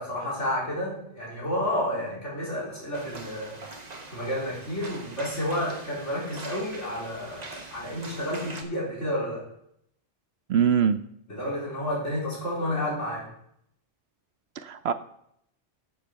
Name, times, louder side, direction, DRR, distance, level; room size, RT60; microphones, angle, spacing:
voice 1, 0.0-3.6 4.1-9.5 11.3-13.3, left 1 dB, 75° left, -6 dB, 4.6 m, -30 dB
sound 1, 2.9-8.6, right 2 dB, 35° right, 1.3 m, -43 dB
voice 2, 10.5-11.0 14.6-14.9, right 7 dB, 65° right, 11 dB, 0.8 m, -22 dB
8.1 x 6.7 x 6.3 m, 0.72 s
omnidirectional pair, 1.3 m